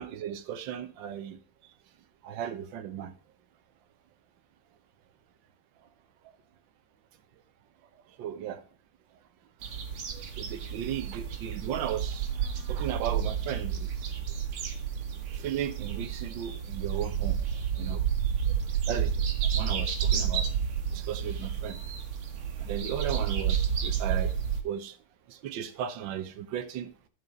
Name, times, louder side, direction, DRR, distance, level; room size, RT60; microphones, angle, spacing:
voice 1, 0.0-1.4 2.2-3.1 8.2-8.6 10.1-12.3 12.7-14.1 15.3-17.4 17.8-18.0 18.5-18.6 18.9-20.5 20.9-21.8 22.6-24.3 24.6-25.0 25.3-26.9, right 9 dB, 65° right, 1.6 m, -36 dB
sound 1, 9.6-24.6, right 8 dB, 85° right, 2.3 m, -30 dB
11.5 x 5.8 x 5.2 m
omnidirectional pair, 2.4 m